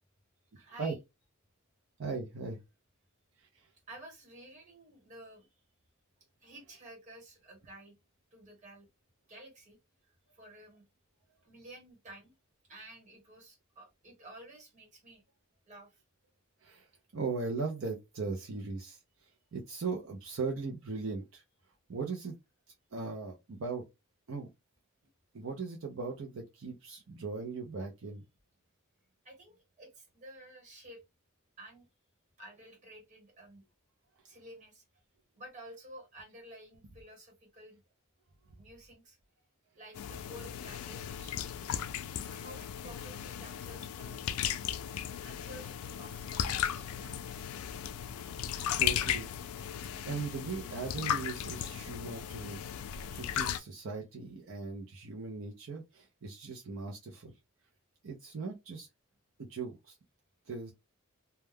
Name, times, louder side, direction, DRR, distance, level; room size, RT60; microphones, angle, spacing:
voice 1, 0.5-1.0 3.9-5.5 6.4-7.9 8.3-8.9 9.3-9.8 10.3-10.8 11.4-12.3 12.7-15.2 15.7-16.0 29.2-31.0 31.6-31.9 32.4-33.6 34.2-34.8 35.3-37.8 38.6-39.2 39.8-41.7 42.3-44.2 45.2-47.5, right 1 dB, 35° right, 1.2 m, -52 dB
voice 2, 2.0-2.6 16.6-16.9 17.1-19.0 19.5-21.4 21.9-22.3 22.9-23.9 24.3-24.5 25.3-28.2 48.8-49.3 50.0-52.6 53.1-57.3 58.0-58.9 59.4-59.9 60.5-60.7, right 4 dB, 65° right, 0.5 m, -38 dB
sound 1, 40.0-53.6, left 9 dB, 90° left, 0.3 m, -36 dB
2.2 x 2.2 x 3.3 m
head